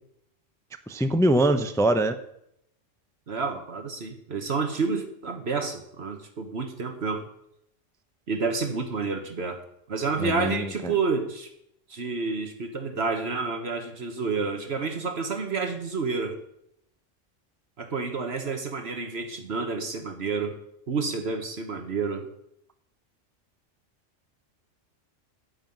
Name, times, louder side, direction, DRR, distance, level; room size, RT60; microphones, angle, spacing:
voice 1, 0.9-2.2 10.2-10.9, right 1 dB, 5° left, 8 dB, 0.5 m, -23 dB
voice 2, 3.3-7.3 8.3-9.6 9.9-11.5 11.9-16.4 17.8-20.6 20.9-22.3, right 4 dB, 55° right, 6 dB, 1.5 m, -29 dB
12.0 x 5.7 x 9.2 m, 0.76 s
omnidirectional pair, 1.3 m